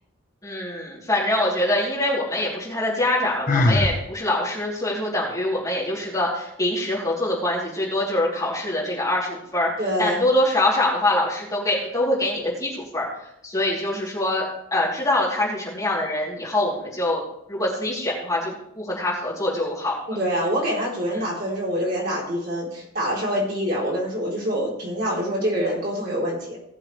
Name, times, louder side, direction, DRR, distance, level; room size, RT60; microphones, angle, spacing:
voice 1, 0.4-13.1 13.4-17.2 17.5-19.9, left 1 dB, 15° left, -7 dB, 3.4 m, -24 dB
Sigh, 3.5-4.0, left 2 dB, 40° left, 0.9 m, -19 dB
voice 2, 9.8-10.2 20.1-26.6, equal, 50° right, -4 dB, 4.1 m, -25 dB
19.0 x 7.2 x 3.4 m, 0.77 s
head